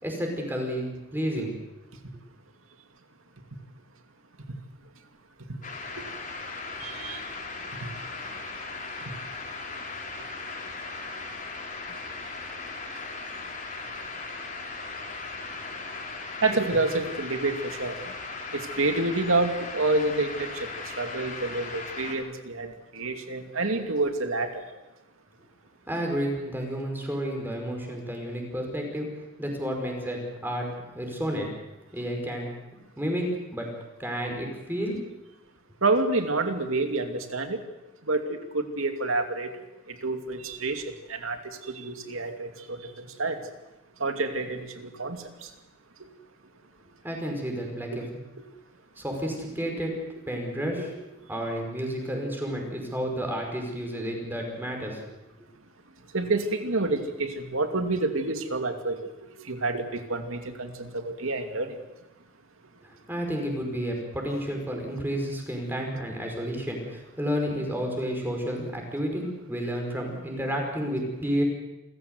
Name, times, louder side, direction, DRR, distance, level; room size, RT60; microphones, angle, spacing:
voice 1, 0.0-1.5 25.9-30.7 30.9-31.5 31.9-32.5 33.0-33.7 34.0-35.0 47.0-48.0 49.0-50.0 50.3-50.9 51.3-55.0 62.8-71.4, equal, 10° right, 1 dB, 5.2 m, -31 dB
sound 1, 5.6-22.1, left 3 dB, 40° left, 4.2 m, -38 dB
voice 2, 6.8-7.2 7.7-7.9 11.9-12.0 16.4-18.0 18.5-24.6 35.8-37.6 38.1-40.8 41.1-43.4 44.0-45.5 56.1-59.1 59.4-61.7, right 2 dB, 90° right, 6 dB, 2.6 m, -28 dB
28.0 x 15.0 x 8.0 m, 1.0 s
head